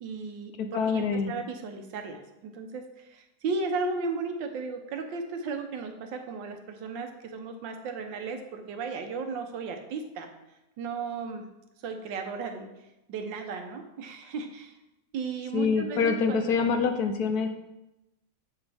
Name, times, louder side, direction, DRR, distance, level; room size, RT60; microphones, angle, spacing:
voice 1, 0.0-10.3 10.8-11.5 11.8-12.7 13.1-14.7 15.1-16.6, right 4 dB, 80° right, 6 dB, 1.6 m, -35 dB
voice 2, 0.6-1.3 15.5-17.5, left 5 dB, 65° left, 7 dB, 1.0 m, -26 dB
7.7 x 7.1 x 3.4 m, 0.95 s
omnidirectional pair, 2.0 m